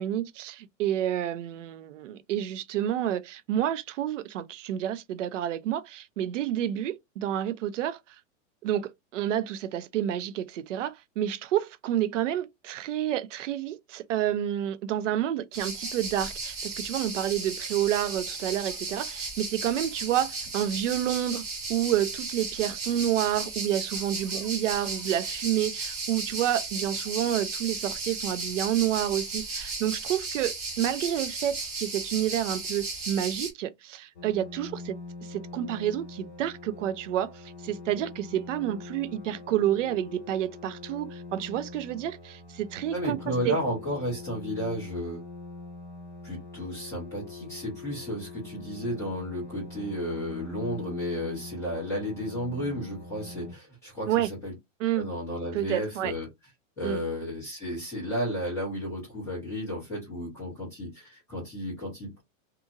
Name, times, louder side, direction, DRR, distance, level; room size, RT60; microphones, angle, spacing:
voice 1, 0.0-8.0 8.6-21.4 21.7-35.0 35.3-43.2 43.4-43.6 54.1-54.3 54.8-55.1 55.5-56.1 56.8-57.0, right 11 dB, 70° right, 0.5 m, -29 dB
sound 1, 15.5-33.5, right 3 dB, 20° right, 0.9 m, -35 dB
sound 2, 34.1-53.5, left 3 dB, 55° left, 1.3 m, -43 dB
voice 2, 42.9-45.2 46.2-54.5 54.9-56.3 56.8-62.2, equal, 5° left, 1.1 m, -33 dB
2.8 x 2.5 x 2.4 m
supercardioid pair, 180°, 39 cm